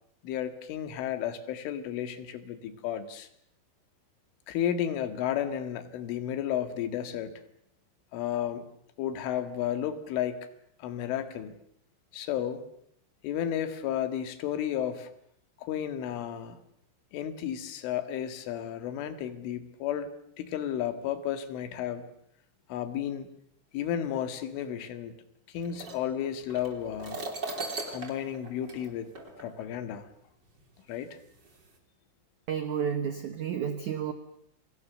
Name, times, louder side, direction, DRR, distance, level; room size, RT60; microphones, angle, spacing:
voice 1, 0.2-3.3 4.5-7.3 8.1-8.7 9.0-10.5 10.8-11.5 12.1-12.6 13.2-15.1 15.6-16.6 17.1-20.1 20.4-22.0 22.7-23.3 23.7-25.1 25.5-27.2 27.9-29.1 29.4-30.1 30.9-31.2, left 10 dB, 85° left, 10 dB, 4.3 m, -32 dB
sound 1, 25.6-29.7 30.6-30.7 31.4-31.7, right 3 dB, 25° right, 3.4 m, -39 dB
voice 2, 32.5-34.1, right 8 dB, 80° right, 9 dB, 1.7 m, -31 dB
30.0 x 24.0 x 6.8 m, 0.69 s
omnidirectional pair, 5.5 m